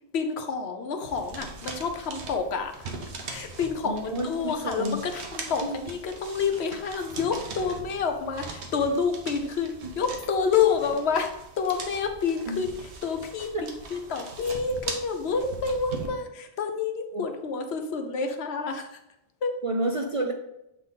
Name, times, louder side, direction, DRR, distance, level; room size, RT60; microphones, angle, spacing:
voice 1, 0.1-2.9 3.2-19.0 19.4-19.6, left 5 dB, 75° left, 6 dB, 1.0 m, -28 dB
sound 1, 1.0-16.1, right 3 dB, 90° right, 1.2 m, -41 dB
voice 2, 3.8-5.0 5.6-5.8 12.5-12.6 13.5-13.6 17.1-17.2 19.6-20.3, right 1 dB, 45° right, 2 dB, 0.4 m, -29 dB
7.4 x 3.5 x 4.0 m, 0.84 s
omnidirectional pair, 1.1 m